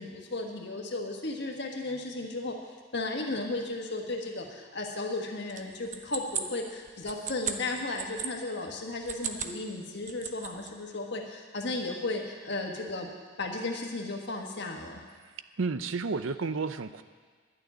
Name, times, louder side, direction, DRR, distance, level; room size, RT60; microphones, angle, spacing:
voice 1, 0.0-2.6 2.9-13.1 13.4-15.0, left 2 dB, 55° left, 1 dB, 1.6 m, -35 dB
sound 1, 5.5-8.3 8.9-9.6 9.9-10.7, right 8 dB, 35° right, 0.7 m, -36 dB
voice 2, 15.6-17.0, right 4 dB, 75° right, 12 dB, 0.6 m, -31 dB
12.0 x 6.6 x 9.6 m, 1.5 s
head